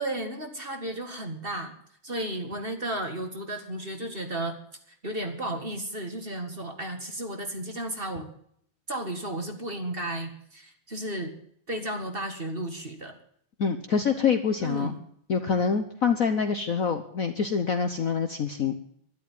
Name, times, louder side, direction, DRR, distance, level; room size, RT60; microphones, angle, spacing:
voice 1, 0.0-1.7 2.0-4.6 5.0-8.3 8.9-11.3 11.7-13.2 14.6-15.0, right 1 dB, 25° right, 5 dB, 2.0 m, -33 dB
voice 2, 13.6-14.9 15.3-18.8, left 6 dB, 50° left, 7 dB, 1.1 m, -26 dB
12.0 x 11.5 x 9.3 m, 0.67 s
omnidirectional pair, 2.3 m